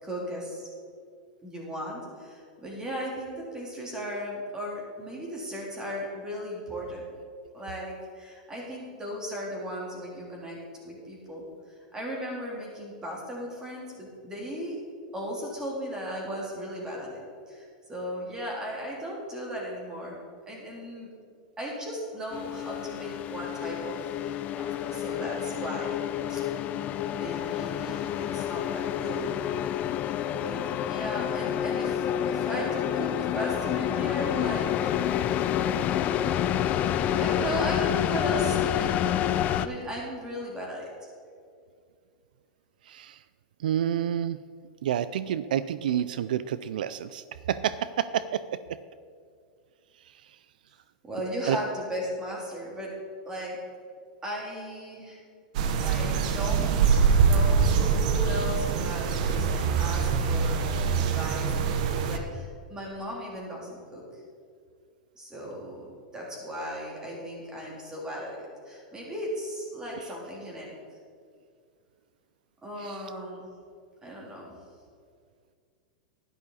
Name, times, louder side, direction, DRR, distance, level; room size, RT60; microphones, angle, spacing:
voice 1, 0.0-0.7 1.4-7.0 7.5-10.6 10.8-11.4 11.9-14.8 15.1-17.2 17.5-20.2 20.5-21.1 21.6-26.0 26.3-26.4 27.1-29.2 30.3-35.8 36.9-39.1 39.5-41.1 51.0-52.9 53.3-53.6 54.2-55.2 55.8-59.5 59.8-64.0 65.2-70.7 72.6-73.5 74.0-74.6, equal, 15° right, -3 dB, 3.5 m, -36 dB
sound 1, 22.3-39.7, left 10 dB, 35° left, 0.5 m, -28 dB
voice 2, 43.6-44.4 44.8-47.2 47.5-48.4 51.5-51.6 72.8-72.9, right 10 dB, 85° right, 15 dB, 0.4 m, -28 dB
sound 2, 55.5-62.2, right 6 dB, 65° right, 1.1 m, -24 dB
12.0 x 11.0 x 4.2 m, 2.2 s
supercardioid pair, 130°, 4 cm